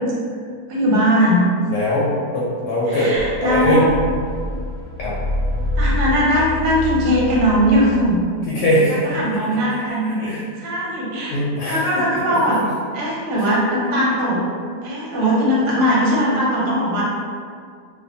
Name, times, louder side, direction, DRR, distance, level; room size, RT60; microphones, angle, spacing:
voice 1, 0.7-1.4 2.9-3.8 5.8-8.2 8.9-10.2 10.6-11.4 11.6-12.6 12.9-14.4 14.8-17.0, equal, 75° right, -5 dB, 1.2 m, -19 dB
voice 2, 1.7-3.1 3.4-3.8 5.0-5.2 8.5-9.5 10.2-10.4 11.3-12.2, left 1 dB, 80° left, -6 dB, 1.2 m, -21 dB
sound 1, 3.2-8.2, left 2 dB, 30° left, 1.1 m, -26 dB
2.8 x 2.1 x 2.6 m, 2.1 s
omnidirectional pair, 1.8 m